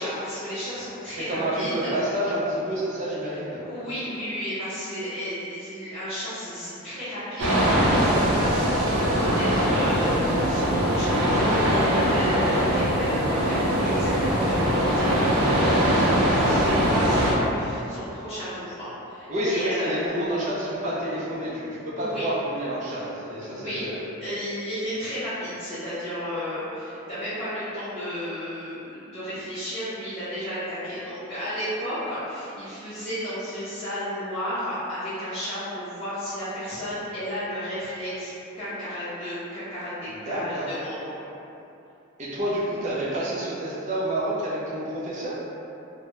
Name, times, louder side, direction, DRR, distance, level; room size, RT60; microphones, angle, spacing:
voice 1, 0.0-1.9 3.6-20.0 22.0-22.3 23.5-23.9 24.2-38.3 38.6-41.2, equal, 30° left, -16 dB, 0.5 m, -33 dB
voice 2, 1.3-3.6 19.3-24.0 40.1-40.7 42.2-45.3, right 1 dB, 35° right, -6 dB, 0.4 m, -28 dB
sound 1, 7.4-17.3, equal, 85° right, 0.5 m, -22 dB
2.2 x 2.0 x 2.9 m, 2.8 s
head